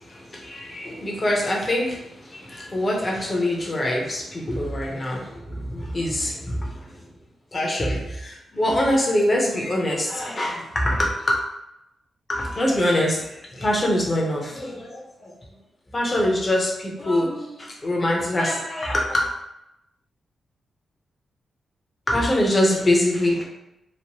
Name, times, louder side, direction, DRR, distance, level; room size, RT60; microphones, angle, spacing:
voice 1, 0.0-2.0 2.3-6.7 7.5-11.4 12.3-15.3 15.9-19.2 22.1-23.4, left 1 dB, 35° left, -2 dB, 0.9 m, -24 dB
3.0 x 2.1 x 3.0 m, 0.88 s
cardioid pair, 75°, 0 cm